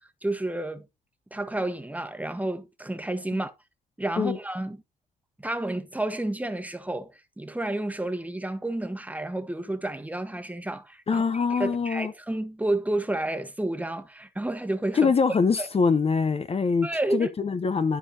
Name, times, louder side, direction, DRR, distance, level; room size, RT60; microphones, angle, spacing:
voice 1, 0.2-0.8 1.3-3.5 4.0-4.8 5.4-15.7 16.8-17.3, right 1 dB, 10° right, 1.3 m, -30 dB
voice 2, 11.1-12.1 14.9-18.0, left 5 dB, 35° left, 0.8 m, -24 dB
13.0 x 4.5 x 2.8 m
supercardioid pair, 60°, 17 cm